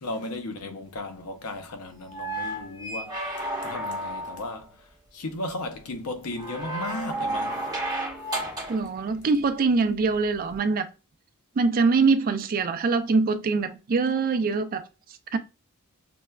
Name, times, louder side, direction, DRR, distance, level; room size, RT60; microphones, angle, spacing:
voice 1, 0.0-7.7, left 2 dB, 80° left, 0.6 m, -35 dB
sound 1, 2.0-4.5 6.4-8.9 10.5-10.6, right 1 dB, 20° right, 1.0 m, -32 dB
voice 2, 8.7-10.9 11.6-14.9 15.3-15.4, right 4 dB, 40° right, 0.4 m, -23 dB
5.9 x 2.2 x 2.2 m
head